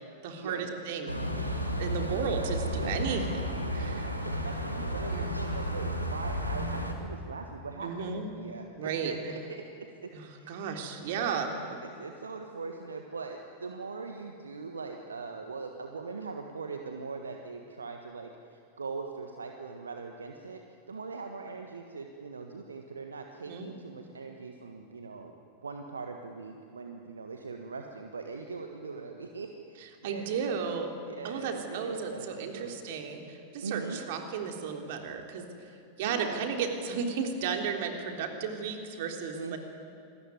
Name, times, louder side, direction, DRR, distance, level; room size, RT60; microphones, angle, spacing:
voice 1, 0.2-1.2 1.8-4.2 5.1-5.3 7.8-8.3 8.8-9.1 10.1-11.5 23.5-23.7 30.0-30.9 31.2-35.5 36.0-39.6, right 6 dB, 50° right, 4 dB, 3.4 m, -34 dB
sound 1, 1.1-6.9, equal, 90° right, 2.8 m, -32 dB
voice 2, 1.8-2.1 3.6-10.6 11.0-20.6 20.9-25.3 25.6-30.6 31.0-32.7 33.6-34.0 36.0-36.4 39.3-39.6, right 4 dB, 75° right, 5 dB, 1.5 m, -41 dB
27.5 x 20.5 x 9.4 m, 2.7 s
figure-of-eight pair, 90°, 0 cm